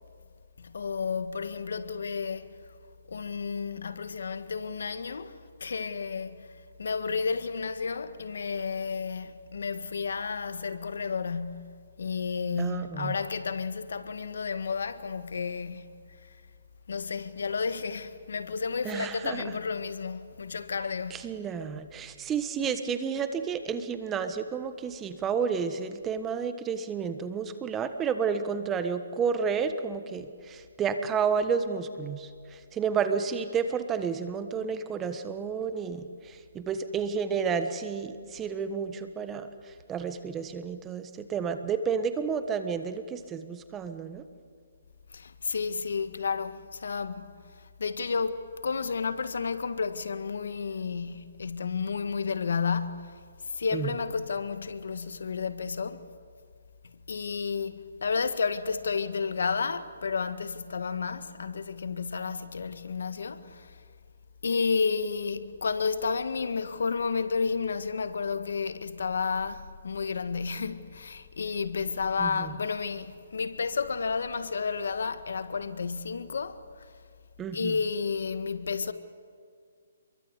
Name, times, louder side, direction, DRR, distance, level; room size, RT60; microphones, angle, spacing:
voice 1, 0.6-2.5 3.1-6.5 6.8-16.3 16.9-21.2 45.1-47.3 47.6-56.1 57.1-63.8 64.4-76.9 77.5-78.9, left 5 dB, 75° left, 1.7 m, -31 dB
voice 2, 12.6-13.2 18.8-19.4 21.1-44.2 53.7-53.9 72.2-72.5 77.4-77.8, right 6 dB, 15° right, 1.3 m, -31 dB
27.0 x 23.0 x 8.3 m
hypercardioid pair, 155°, 0 cm